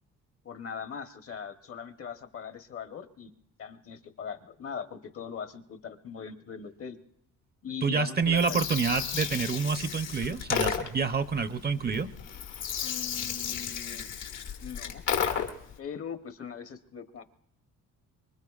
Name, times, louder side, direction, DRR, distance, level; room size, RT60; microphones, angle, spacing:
voice 1, 0.4-3.3 3.6-7.0 7.6-8.6 12.8-14.1 14.6-15.0 15.8-17.2, left 7 dB, 50° left, 8 dB, 1.0 m, -40 dB
voice 2, 7.8-12.1, right 5 dB, 35° right, 11 dB, 0.7 m, -28 dB
Gurgling, 8.2-15.7, left 8 dB, 80° left, 1.7 m, -33 dB
25.0 x 22.5 x 2.4 m, 0.78 s
cardioid pair, 90°, 30 cm